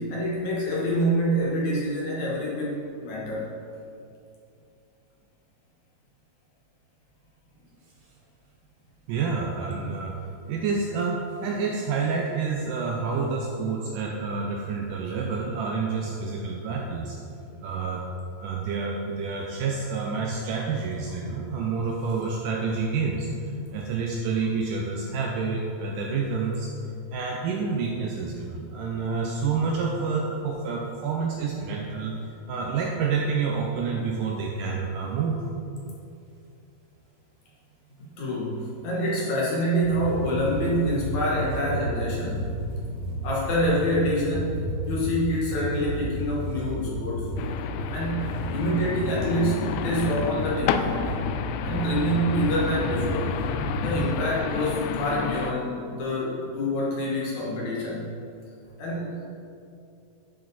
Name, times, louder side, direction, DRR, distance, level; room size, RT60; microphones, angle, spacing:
voice 1, 0.0-3.5 38.2-42.5 43.2-44.6 44.9-47.3 47.9-51.0 51.6-53.4 53.8-58.2 58.8-59.1, equal, 60° left, -5 dB, 2.3 m, -26 dB
voice 2, 9.1-17.2 17.6-18.1 18.4-23.3 23.7-26.7 27.1-35.4, right 4 dB, 80° right, -1 dB, 1.9 m, -28 dB
sound 1, 39.8-54.2, equal, 40° right, 1.7 m, -32 dB
sound 2, 47.4-55.5, left 7 dB, 85° left, 2.5 m, -31 dB
10.5 x 6.6 x 4.1 m, 2.6 s
omnidirectional pair, 4.4 m